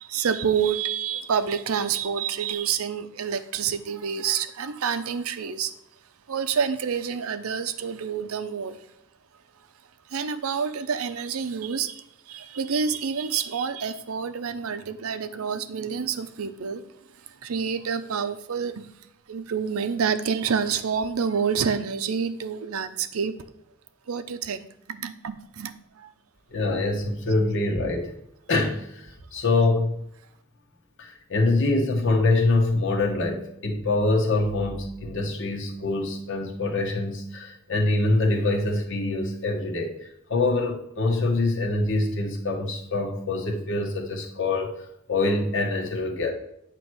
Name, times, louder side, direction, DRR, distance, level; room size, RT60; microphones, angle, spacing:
voice 1, 0.0-5.7 6.3-8.8 10.1-16.9 17.3-18.9 19.3-23.3 24.1-26.1, right 6 dB, 85° right, 11 dB, 0.6 m, -28 dB
voice 2, 26.5-28.1 28.5-29.9 31.0-40.0 40.3-44.7 45.1-46.3, left 2 dB, 60° left, 1 dB, 1.2 m, -24 dB
8.7 x 3.0 x 6.1 m, 0.78 s
head